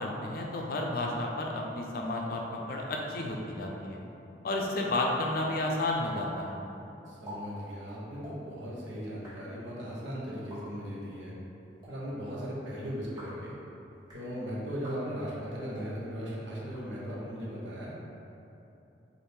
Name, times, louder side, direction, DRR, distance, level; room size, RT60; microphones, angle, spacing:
voice 1, 0.0-4.0 4.4-6.5, left 2 dB, 55° left, 0 dB, 0.4 m, -32 dB
sound 1, 6.1-6.3 6.5-6.6 7.1-7.4 8.1-8.3 9.0-9.3 10.3-10.6 11.6-11.9 13.0-13.4 13.9-14.2 14.8-15.0 15.6-15.9 16.6-17.3, equal, 25° right, 1.0 m, -48 dB
voice 2, 7.1-11.3 11.9-13.5 14.1-18.0, equal, 80° right, -5 dB, 0.9 m, -38 dB
4.2 x 2.5 x 3.4 m, 2.9 s
head